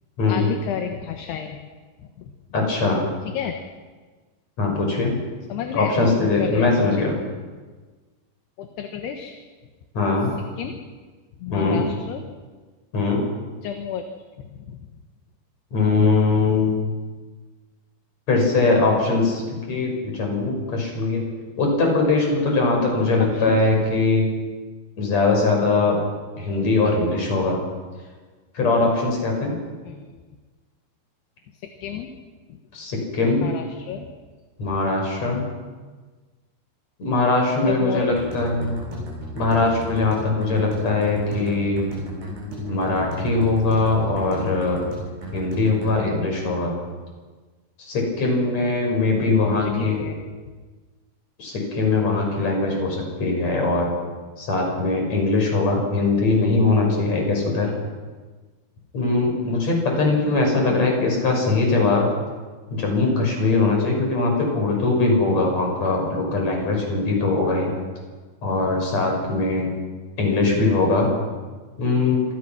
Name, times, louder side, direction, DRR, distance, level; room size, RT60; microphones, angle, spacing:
voice 1, 0.3-1.6 2.2-2.3 3.3-3.5 5.5-5.9 6.4-7.0 8.6-9.4 10.6-10.8 11.4-12.2 13.6-14.0 14.4-14.8 23.2-23.6 29.8-30.1 31.8-32.1 32.5-32.6 33.4-34.1 37.7-38.4 49.4-50.2 60.7-60.8, left 8 dB, 70° left, 4 dB, 3.3 m, -31 dB
voice 2, 2.5-3.1 4.6-5.2 5.7-7.1 9.9-10.3 11.5-11.8 12.9-13.2 15.7-16.7 18.3-19.4 19.7-21.2 21.6-24.3 25.0-26.0 26.4-27.6 28.5-29.5 32.7-33.5 34.6-35.5 37.0-38.8 39.3-41.8 42.7-44.8 45.3-46.8 47.8-50.0 51.4-53.9 54.4-57.7 58.9-62.0 62.7-67.7 68.4-69.7 70.2-71.1 71.8-72.2, left 3 dB, 35° left, 1 dB, 7.0 m, -21 dB
sound 1, 38.1-45.9, right 1 dB, 55° right, 9.7 m, -35 dB
27.0 x 24.5 x 6.1 m, 1.4 s
omnidirectional pair, 5.2 m